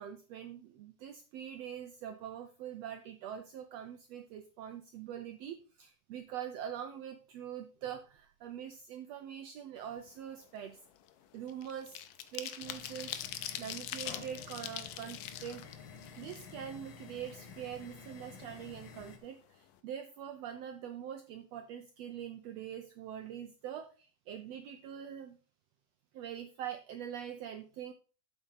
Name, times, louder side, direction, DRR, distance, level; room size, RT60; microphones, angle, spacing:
voice 1, 0.0-10.8 11.3-12.0 12.3-15.7 16.2-25.4 26.1-27.9, right 9 dB, 85° right, 7 dB, 1.5 m, -44 dB
sound 1, 9.9-10.1 10.5-16.9 17.3-17.4 17.7-18.7 19.0-19.1 19.4-19.7, left 11 dB, 85° left, 2.4 m, -43 dB
sound 2, 12.6-19.2, left 6 dB, 60° left, 1.3 m, -51 dB
7.9 x 5.6 x 5.8 m, 0.37 s
omnidirectional pair, 3.7 m